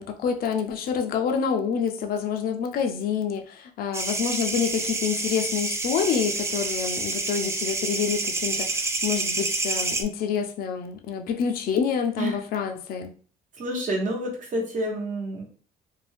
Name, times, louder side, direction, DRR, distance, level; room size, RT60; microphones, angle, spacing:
voice 1, 0.0-13.1, left 7 dB, 60° left, 4 dB, 0.5 m, -27 dB
sound 1, 3.9-10.0, right 3 dB, 15° right, 0.3 m, -28 dB
voice 2, 13.6-15.4, right 1 dB, 50° right, 0 dB, 1.1 m, -28 dB
2.6 x 2.2 x 3.3 m, 0.42 s
cardioid pair, 110°, 17 cm